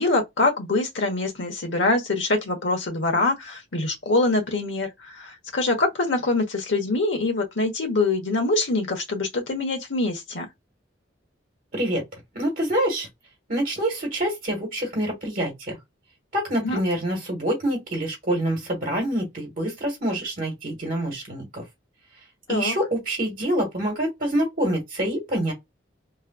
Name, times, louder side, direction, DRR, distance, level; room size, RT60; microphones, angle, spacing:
voice 1, 0.0-10.5 16.6-16.8 22.5-22.7, left 2 dB, 70° left, 1.1 m, -24 dB
voice 2, 12.3-13.1 13.5-15.8 16.3-21.6 22.5-25.5, right 1 dB, 50° right, 1.3 m, -26 dB
3.1 x 2.3 x 2.3 m
head